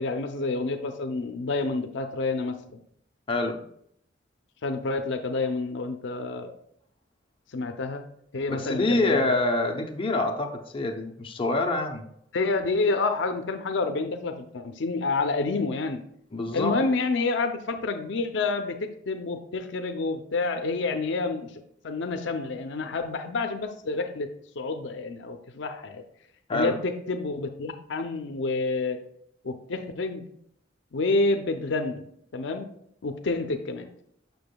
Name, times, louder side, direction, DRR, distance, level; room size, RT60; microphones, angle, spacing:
voice 1, 0.0-2.6 4.6-6.5 7.5-8.0 8.3-9.4 12.3-16.0 16.5-26.0 26.5-29.0 29.4-30.2 30.9-32.0 32.3-32.7 33.0-33.9, left 3 dB, 70° left, 6 dB, 0.5 m, -28 dB
voice 2, 3.3-3.6 8.5-12.0 16.3-16.8 26.5-26.8, left 2 dB, 30° left, 2 dB, 0.6 m, -26 dB
6.9 x 6.1 x 2.2 m, 0.69 s
head